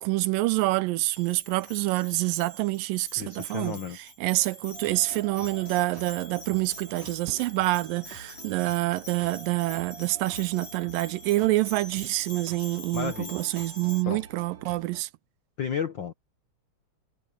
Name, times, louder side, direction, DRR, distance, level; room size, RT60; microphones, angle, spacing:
voice 1, 0.0-15.1, right 20 dB, 85° right, 2.3 m, -27 dB
Bell, 1.1-14.0, left 2 dB, 50° left, 6.3 m, -46 dB
voice 2, 3.2-4.0 12.9-13.3 14.1-14.2 15.6-16.1, left 7 dB, 80° left, 1.0 m, -32 dB
sound 1, 4.7-15.0, right 5 dB, 50° right, 4.3 m, -47 dB
omnidirectional pair, 4.0 m